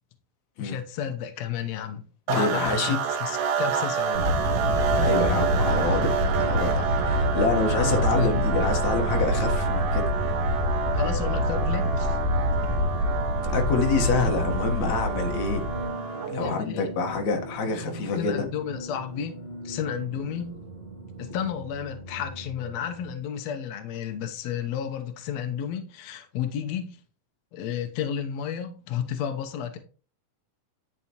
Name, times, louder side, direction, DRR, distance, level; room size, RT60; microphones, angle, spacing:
voice 1, 0.6-4.3 7.7-8.4 10.9-12.2 12.6-12.8 16.4-16.9 18.1-20.6 21.2-27.0 27.5-29.8, left 8 dB, 85° left, 1.5 m, -32 dB
voice 2, 2.3-3.0 4.9-10.0 13.5-15.7 16.3-18.4, left 4 dB, 60° left, 2.3 m, -27 dB
sound 1, 2.3-16.5, right 6 dB, 80° right, 2.9 m, -29 dB
sound 2, 4.1-15.9, left 1 dB, 55° right, 3.1 m, -26 dB
sound 3, 13.1-23.1, right 2 dB, 15° right, 2.2 m, -40 dB
11.0 x 6.8 x 3.0 m
omnidirectional pair, 4.4 m